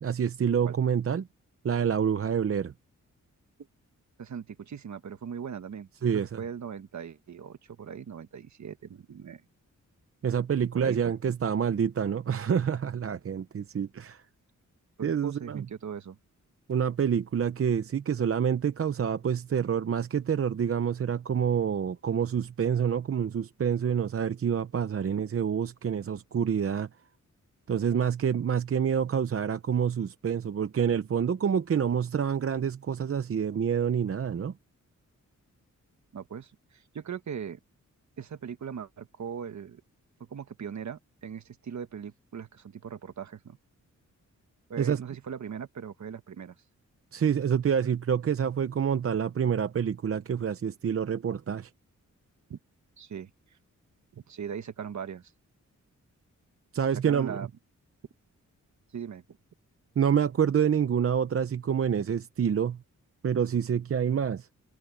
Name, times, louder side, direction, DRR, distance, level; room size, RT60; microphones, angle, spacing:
voice 1, 0.0-1.3 1.6-2.7 6.0-6.4 10.2-14.2 15.0-15.6 16.7-26.9 27.7-34.5 44.8-45.0 47.1-51.7 56.7-57.4 60.0-62.8 63.2-64.5, right 7 dB, 45° right, 0.7 m, -27 dB
voice 2, 4.2-9.4 10.7-11.1 15.0-16.2 36.1-37.6 38.2-39.8 40.3-43.6 44.7-46.5 52.5-52.6 53.0-53.3 54.1-55.3 57.1-57.5 58.9-59.2, right 7 dB, 65° right, 1.5 m, -39 dB
wide cardioid pair, 125°, 31 cm